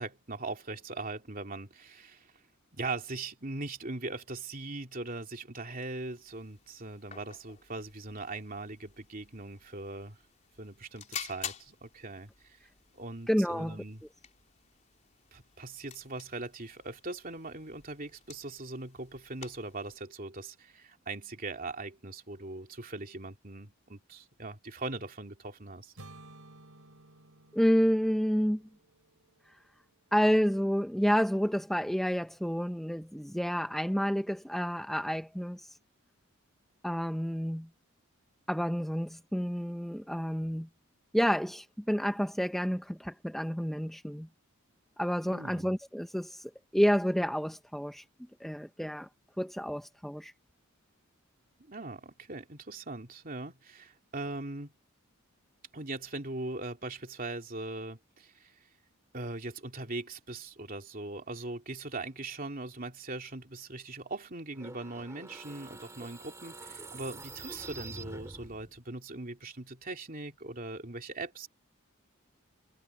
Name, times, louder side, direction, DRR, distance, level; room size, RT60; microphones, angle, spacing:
voice 1, 0.0-2.3 2.7-10.2 10.6-12.6 12.9-14.0 15.3-25.9 45.3-45.8 51.7-54.7 55.7-58.5 59.1-71.5, right 2 dB, 40° right, 3.0 m, -40 dB
sound 1, 5.9-20.0, left 8 dB, 35° left, 4.4 m, -49 dB
voice 2, 13.3-13.8 27.5-28.6 30.1-35.7 36.8-37.7 38.5-40.7 41.1-44.3 45.0-48.0 48.4-49.1 49.4-50.3, equal, ahead, 0.6 m, -29 dB
sound 2, 26.0-30.0, right 2 dB, 85° right, 3.6 m, -55 dB
sound 3, 64.5-68.8, right 3 dB, 15° right, 2.5 m, -46 dB
head